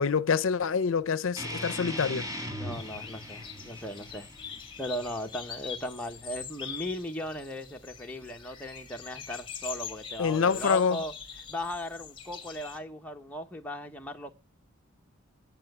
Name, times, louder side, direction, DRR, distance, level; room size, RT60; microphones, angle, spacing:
voice 1, 0.0-2.3 10.2-11.0, left 6 dB, 70° left, 0.5 m, -26 dB
sound 1, 1.4-6.4, left 1 dB, 20° right, 1.8 m, -40 dB
voice 2, 2.6-4.3 4.8-11.1 11.5-14.3, left 1 dB, 10° left, 0.9 m, -37 dB
sound 2, 2.7-12.8, left 7 dB, 25° left, 1.7 m, -43 dB
10.0 x 5.7 x 7.8 m
head